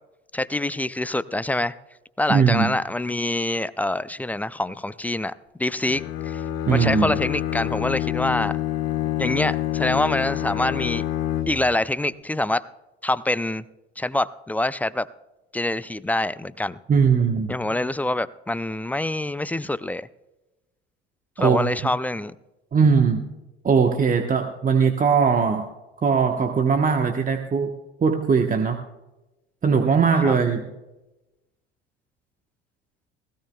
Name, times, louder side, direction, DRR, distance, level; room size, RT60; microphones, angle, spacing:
voice 1, 0.3-1.7 2.2-5.3 5.6-6.4 6.7-8.6 9.2-11.0 11.5-12.6 13.0-13.6 14.0-15.1 15.5-16.8 17.5-20.1 21.4-22.4 30.3-30.4, left 1 dB, 5° left, 17 dB, 0.4 m, -25 dB
voice 2, 2.3-2.7 6.7-7.1 16.9-17.5 21.4-21.7 22.7-23.3 23.6-25.7 26.0-27.7 28.0-28.8 29.6-30.7, right 5 dB, 25° right, 5 dB, 1.1 m, -20 dB
Bowed string instrument, 5.8-11.8, left 12 dB, 50° left, 1.3 m, -27 dB
19.5 x 15.5 x 2.3 m, 1.0 s
figure-of-eight pair, 65°, 32 cm